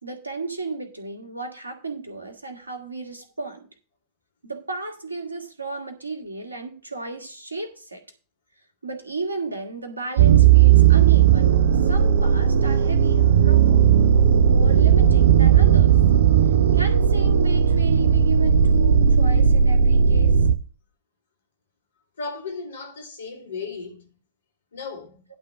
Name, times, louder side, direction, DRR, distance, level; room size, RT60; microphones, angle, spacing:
voice 1, 0.0-3.7 4.4-8.0 8.8-13.9 14.4-16.0 16.7-20.4, right 3 dB, 80° right, 2.3 m, -34 dB
sound 1, 10.2-20.5, right 8 dB, 60° right, 0.7 m, -16 dB
voice 2, 22.2-24.1 24.7-25.2, left 4 dB, 70° left, 2.9 m, -35 dB
11.5 x 3.8 x 7.7 m
figure-of-eight pair, 90°, 0 cm